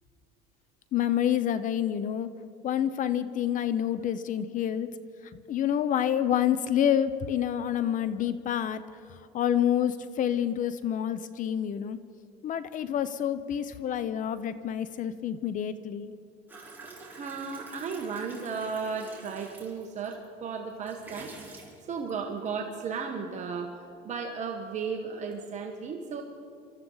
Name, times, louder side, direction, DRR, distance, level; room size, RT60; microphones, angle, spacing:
voice 1, 0.9-2.3 2.6-5.0 5.5-8.8 9.1-12.0 12.4-16.1, left 10 dB, 40° left, 14 dB, 0.6 m, -28 dB
sound 1, 16.5-20.3 20.7-22.5, right 3 dB, 10° right, 3.5 m, -48 dB
voice 2, 17.1-21.3 21.9-26.2, right 5 dB, 35° right, 2 dB, 1.3 m, -35 dB
26.0 x 13.5 x 3.9 m, 2.5 s
cardioid pair, 125°, 20 cm